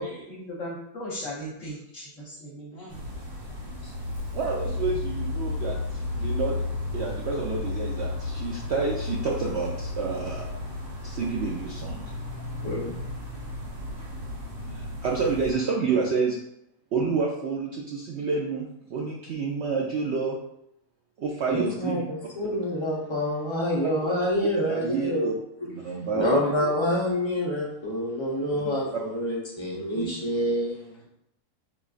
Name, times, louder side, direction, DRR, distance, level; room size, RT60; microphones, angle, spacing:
voice 1, 0.0-3.0, equal, 60° left, -6 dB, 1.1 m, -37 dB
sound 1, 2.9-15.5, left 2 dB, 55° right, 1.3 m, -33 dB
voice 2, 4.3-6.6 6.9-10.4 11.0-12.0 14.7-16.4 16.9-20.3 21.2-22.0 24.5-25.3 25.6-26.4 29.9-30.1, right 4 dB, 85° right, -3 dB, 0.6 m, -29 dB
voice 3, 12.6-13.0 21.5-25.3 25.6-25.7 26.1-31.0, left 1 dB, 30° left, -5 dB, 0.5 m, -27 dB
4.9 x 2.4 x 2.4 m, 0.78 s
omnidirectional pair, 1.7 m